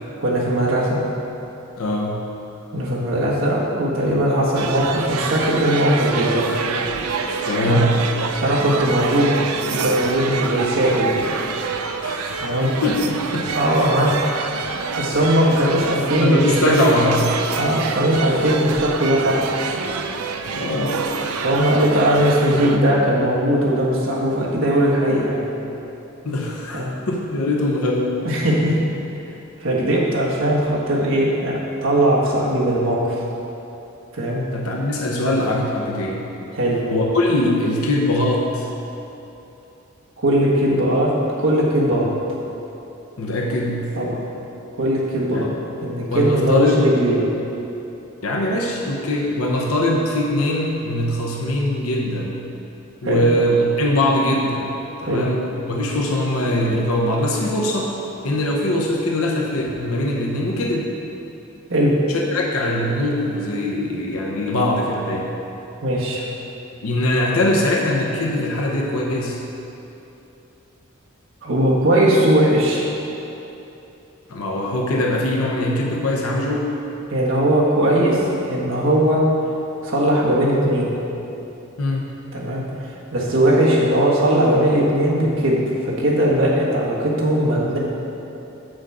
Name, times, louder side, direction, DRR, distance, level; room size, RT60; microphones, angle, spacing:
voice 1, 0.2-1.0 2.7-6.5 7.6-7.8 8.3-9.3 9.7-11.3 12.4-12.7 13.5-14.1 15.0-16.7 17.6-19.5 20.6-20.8 21.4-25.5 26.7-26.9 28.2-28.8 29.6-33.2 34.1-34.4 36.5-36.8 40.2-41.1 41.4-42.1 43.9-44.2 44.8-45.5 45.8-47.2 53.0-53.3 55.1-55.3 61.7-61.9 65.8-66.2 71.4-72.9 77.1-78.2 78.5-79.2 79.8-80.9 82.3-82.6 83.1-87.8, right 1 dB, 65° right, -5 dB, 1.6 m, -19 dB
voice 2, 1.8-2.3 7.5-8.0 12.0-12.5 12.8-13.5 16.2-17.4 20.5-21.0 26.2-28.2 34.5-36.2 36.9-38.7 42.1-42.2 43.2-43.9 45.3-45.5 46.1-46.8 48.2-52.5 53.0-57.9 58.2-60.9 62.3-65.3 66.8-69.4 74.3-76.7 81.8-82.1, left 1 dB, 85° left, -1 dB, 0.9 m, -22 dB
sound 1, 4.5-22.8, right 5 dB, 90° right, 0.5 m, -27 dB
7.8 x 6.3 x 4.9 m, 3.0 s
head